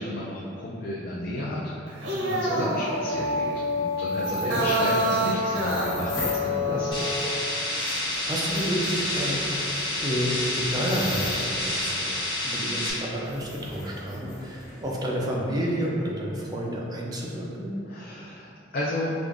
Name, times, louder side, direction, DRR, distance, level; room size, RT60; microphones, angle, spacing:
voice 1, 0.0-3.5 3.8-7.2 17.9-19.1, left 1 dB, 55° left, -5 dB, 0.4 m, -33 dB
sound 1, 1.9-7.4, equal, 80° right, 0.7 m, -27 dB
sound 2, 2.3-2.4 4.0-6.5 7.2-7.3 7.7-11.8 12.7-12.8 13.2-14.9, left 2 dB, 85° left, 1.1 m, -40 dB
voice 2, 4.4-4.7 6.6-6.8 7.9-17.7, equal, 20° right, -3 dB, 0.5 m, -30 dB
sound 3, 6.9-12.9, left 1 dB, 25° left, 1.3 m, -29 dB
4.8 x 2.5 x 2.5 m, 2.5 s
head